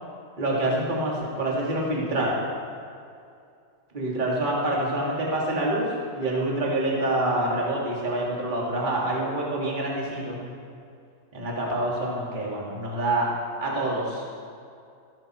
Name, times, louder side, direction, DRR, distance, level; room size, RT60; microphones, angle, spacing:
voice 1, 0.4-2.4 3.9-5.9 6.1-10.4 11.3-13.3 13.6-14.2, right 1 dB, 15° right, -4 dB, 1.8 m, -26 dB
14.5 x 13.0 x 4.5 m, 2.4 s
omnidirectional pair, 4.2 m